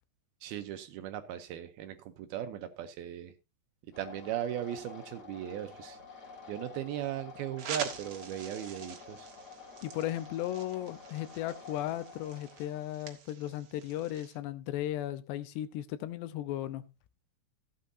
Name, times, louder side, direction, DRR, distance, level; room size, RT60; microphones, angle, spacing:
voice 1, 0.4-3.3 3.9-6.0 6.5-9.3, right 11 dB, 75° right, 2.4 m, -38 dB
sound 1, 3.9-12.9, left 4 dB, 50° left, 1.2 m, -49 dB
sound 2, 7.6-14.4, right 7 dB, 55° right, 1.7 m, -45 dB
voice 2, 9.8-16.8, left 13 dB, 80° left, 2.9 m, -36 dB
15.5 x 8.7 x 2.6 m
omnidirectional pair, 5.0 m